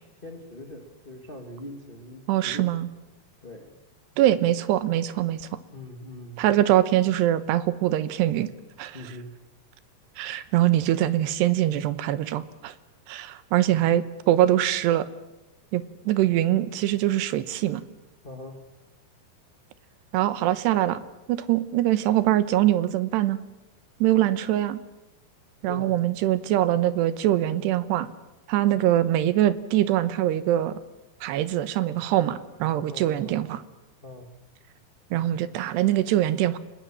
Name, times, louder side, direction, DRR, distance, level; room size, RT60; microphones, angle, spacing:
voice 1, 0.2-2.7 3.4-3.8 5.7-6.4 8.9-9.3 18.2-18.6 25.7-25.9 32.9-33.4 34.0-34.3, left 1 dB, 80° left, 4 dB, 0.5 m, -41 dB
voice 2, 2.3-2.9 4.2-5.4 6.4-8.5 8.8-9.0 10.2-12.7 13.1-15.1 15.7-17.8 20.1-21.0 21.3-23.4 24.0-24.8 25.6-28.1 28.5-30.7 31.2-33.6 35.1-36.6, right 13 dB, 80° right, 13 dB, 3.1 m, -23 dB
30.0 x 19.5 x 7.5 m, 1.0 s
omnidirectional pair, 4.9 m